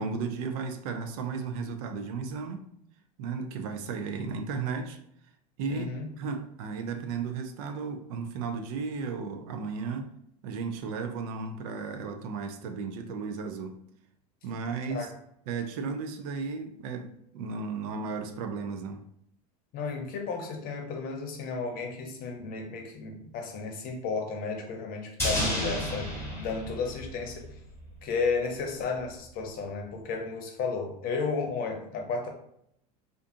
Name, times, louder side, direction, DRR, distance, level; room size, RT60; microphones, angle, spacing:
voice 1, 0.0-2.7 3.2-5.0 5.6-10.1 10.4-13.8 14.4-15.1 15.5-19.0, right 5 dB, 70° right, 0.5 m, -34 dB
voice 2, 5.7-6.1 14.9-15.1 19.7-27.4 28.0-32.3, left 4 dB, 45° left, 0.7 m, -33 dB
sound 1, 25.2-27.6 27.9-28.0, left 1 dB, 10° left, 1.3 m, -31 dB
2.5 x 2.4 x 2.5 m
hypercardioid pair, 95°, 20 cm